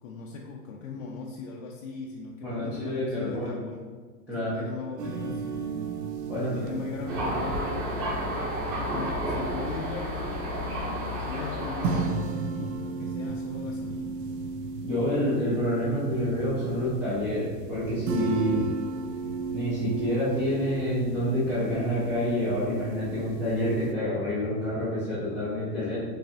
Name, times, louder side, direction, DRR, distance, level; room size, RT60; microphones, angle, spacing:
voice 1, 0.0-3.9 4.4-5.7 6.4-8.6 8.9-10.3 11.3-14.2, left 4 dB, 55° left, -1 dB, 0.6 m, -39 dB
voice 2, 2.4-3.6 4.3-4.6 6.3-6.6 14.8-18.6 19.5-26.0, equal, 5° right, -13 dB, 0.4 m, -28 dB
sound 1, 5.0-23.9, right 4 dB, 80° right, 0.7 m, -35 dB
Thunder, 7.1-12.1, equal, 30° right, 1.4 m, -31 dB
5.5 x 3.3 x 2.6 m, 1.5 s
hypercardioid pair, 135°, 48 cm